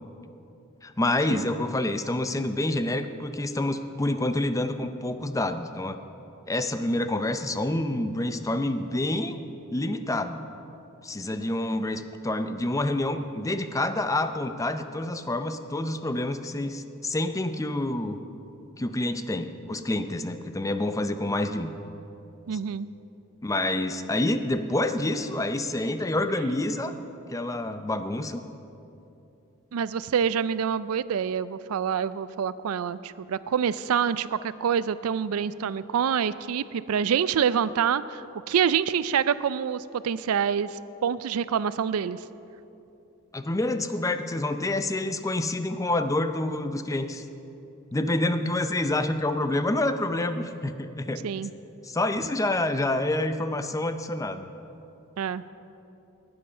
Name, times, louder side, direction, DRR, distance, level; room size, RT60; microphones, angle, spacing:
voice 1, 0.8-6.0 6.5-9.4 9.7-10.4 11.0-18.2 18.8-21.7 23.4-26.9 27.3-28.4 43.3-47.2 47.9-51.3 51.8-54.5, left 1 dB, 15° left, 9 dB, 0.5 m, -27 dB
voice 2, 22.5-22.9 29.7-42.2 51.2-51.5 55.2-55.4, right 7 dB, 75° right, 16 dB, 0.4 m, -26 dB
19.0 x 7.8 x 5.5 m, 2.8 s
head